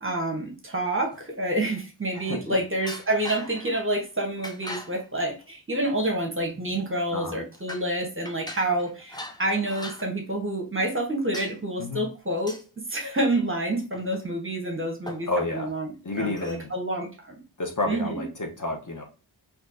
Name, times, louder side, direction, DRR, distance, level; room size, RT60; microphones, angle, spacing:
voice 1, 0.0-12.6 12.9-17.4 17.9-18.2, right 1 dB, 25° right, 3 dB, 1.2 m, -28 dB
sound 1, 1.1-1.8 2.8-3.9 4.4-5.1 6.0-6.1 6.5-7.0 7.5-7.9 8.3-10.1 10.9-11.0 11.3-11.5 12.4-12.6 13.9-14.5 14.8-14.9 15.1-15.5 16.4-16.7, left 1 dB, 10° left, 0.6 m, -41 dB
voice 2, 15.3-15.7 16.0-16.7 17.6-19.0, left 2 dB, 40° left, 2 dB, 1.0 m, -30 dB
4.3 x 2.8 x 2.6 m, 0.33 s
wide cardioid pair, 60°, 47 cm